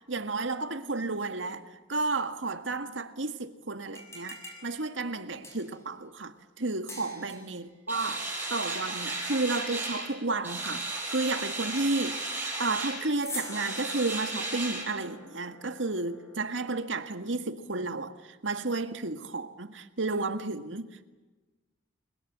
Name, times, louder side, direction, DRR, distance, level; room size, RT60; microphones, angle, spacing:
voice 1, 0.1-21.1, right 3 dB, 80° right, 1.8 m, -32 dB
sound 1, 3.9-5.9 6.9-7.6 13.1-16.7, left 1 dB, 15° left, 6.4 m, -45 dB
sound 2, 7.9-10.1 10.4-13.0 13.5-14.8, right 2 dB, 10° right, 7.3 m, -34 dB
30.0 x 21.5 x 7.6 m
head